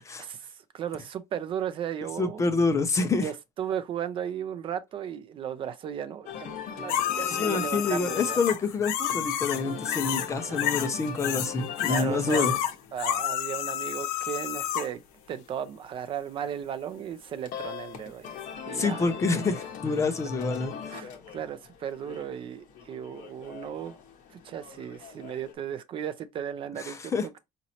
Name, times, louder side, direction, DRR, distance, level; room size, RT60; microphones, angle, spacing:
voice 1, 0.2-2.4 3.2-8.4 10.4-10.6 11.9-12.5 12.9-15.0 15.3-18.4 18.7-19.4 20.9-23.9 24.3-27.4, right 9 dB, 35° right, 0.4 m, -35 dB
voice 2, 2.2-3.3 7.3-12.5 18.7-21.0 26.8-27.4, left 4 dB, 20° left, 0.5 m, -27 dB
sound 1, 6.3-25.5, left 8 dB, 60° left, 1.1 m, -42 dB
sound 2, 6.9-10.3 10.6-11.5 11.8-14.9 18.4-18.5, left 11 dB, 85° left, 0.6 m, -30 dB
5.1 x 2.9 x 2.8 m
cardioid pair, 175°, 15 cm